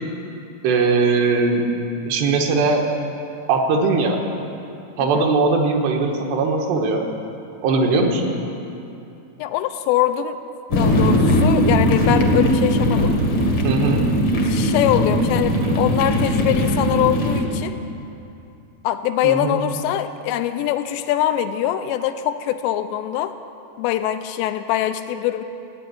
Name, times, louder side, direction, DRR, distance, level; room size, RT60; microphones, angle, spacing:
voice 1, 0.6-1.7 2.1-2.9 3.5-4.2 5.0-7.0 7.6-8.3 13.6-14.0 19.2-19.6, right 4 dB, 75° right, 2 dB, 3.3 m, -19 dB
voice 2, 9.4-10.4 10.8-13.2 14.5-17.8 18.8-23.4 23.8-25.4, left 11 dB, 85° left, 9 dB, 2.8 m, -23 dB
sound 1, 10.7-17.4, equal, 55° left, 1.4 m, -19 dB
16.5 x 9.3 x 9.3 m, 2.7 s
omnidirectional pair, 5.1 m